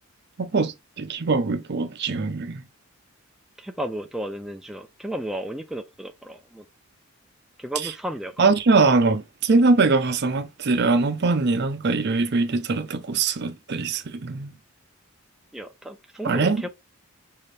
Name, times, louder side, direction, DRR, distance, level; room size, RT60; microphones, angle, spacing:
voice 1, 0.4-2.6 7.8-7.9 8.4-14.5 16.2-16.7, right 3 dB, 50° right, 0.6 m, -22 dB
voice 2, 3.6-6.6 7.6-8.4 15.5-16.7, right 1 dB, ahead, 0.4 m, -33 dB
5.5 x 2.5 x 3.3 m
head